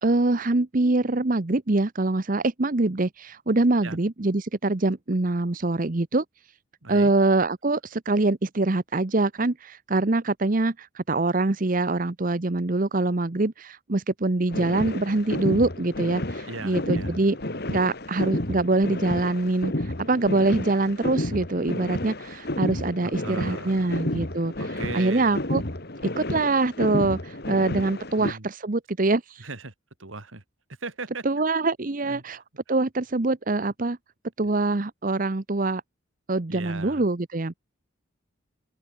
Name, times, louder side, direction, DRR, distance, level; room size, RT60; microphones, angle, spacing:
voice 1, 0.0-6.2 6.9-17.4 17.7-25.6 26.2-29.5 31.2-32.4 32.7-34.0 34.4-35.8 36.3-37.5, right 2 dB, 45° right, 0.9 m, -24 dB
voice 2, 6.8-7.1 16.5-17.2 23.0-23.9 24.6-25.4 28.2-28.5 29.4-29.7 30.0-30.4 30.8-31.2 32.1-32.2 36.5-37.1, right 3 dB, 80° right, 2.3 m, -37 dB
sound 1, 14.5-28.3, left 1 dB, 50° left, 2.4 m, -31 dB
open air
head